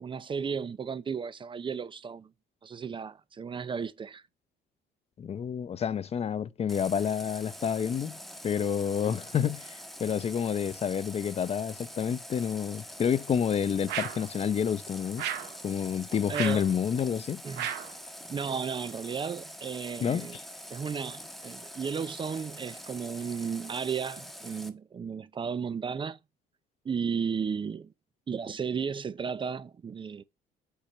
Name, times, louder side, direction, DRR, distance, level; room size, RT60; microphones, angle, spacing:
voice 1, 0.0-2.3 2.6-4.2 16.1-16.6 17.4-17.7 18.3-20.4 20.7-26.2 26.8-27.9 28.3-30.2, right 6 dB, 30° right, 0.6 m, -34 dB
voice 2, 5.2-8.2 8.4-15.2 15.6-17.4 20.0-20.4, left 8 dB, 35° left, 0.7 m, -29 dB
Water tap faucet, 6.7-24.7, equal, ahead, 1.3 m, -45 dB
sound 1, 13.9-14.3 15.2-15.6 16.3-16.7 17.6-18.0, right 10 dB, 90° right, 2.2 m, -34 dB
8.4 x 4.4 x 6.7 m
cardioid pair, 110°, 17 cm